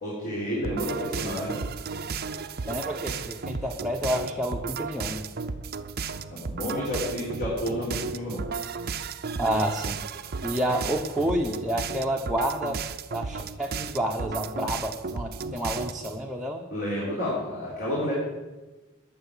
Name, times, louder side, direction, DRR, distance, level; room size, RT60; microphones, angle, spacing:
voice 1, 0.0-1.6 6.3-8.4 16.7-18.1, left 1 dB, 50° left, -6 dB, 4.0 m, -30 dB
sound 1, 0.6-16.2, right 5 dB, 50° right, 0.7 m, -34 dB
voice 2, 2.7-5.3 9.4-10.0 10.4-12.8 13.1-16.7, equal, ahead, -1 dB, 1.0 m, -29 dB
12.5 x 7.0 x 10.0 m, 1.2 s
head